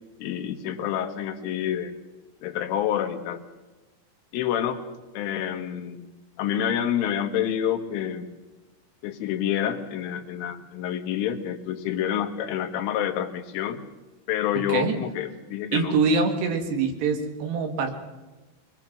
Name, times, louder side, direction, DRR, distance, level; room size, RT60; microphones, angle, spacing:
voice 1, 0.2-1.9 2.4-3.4 4.3-4.8 5.1-6.1 6.4-8.3 9.0-13.8 14.3-16.0, left 10 dB, 75° left, 5 dB, 3.9 m, -28 dB
voice 2, 14.6-15.0 15.7-17.9, right 4 dB, 60° right, 5 dB, 3.8 m, -24 dB
23.0 x 22.0 x 6.1 m, 1.1 s
omnidirectional pair, 6.0 m